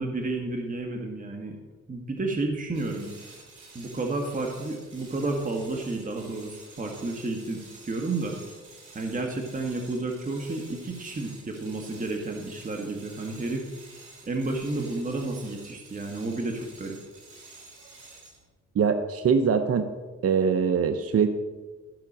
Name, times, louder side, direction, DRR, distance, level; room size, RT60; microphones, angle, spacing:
voice 1, 0.0-1.6 1.9-3.1 3.7-8.3 8.9-13.7 14.3-17.0, right 2 dB, 25° right, 2 dB, 1.6 m, -31 dB
sound 1, 2.7-18.5, right 3 dB, 80° right, 4.0 m, -50 dB
voice 2, 18.7-19.9 20.2-21.4, right 6 dB, 50° right, 9 dB, 0.9 m, -23 dB
14.0 x 5.9 x 7.3 m, 1.3 s
cardioid pair, 90°, 30 cm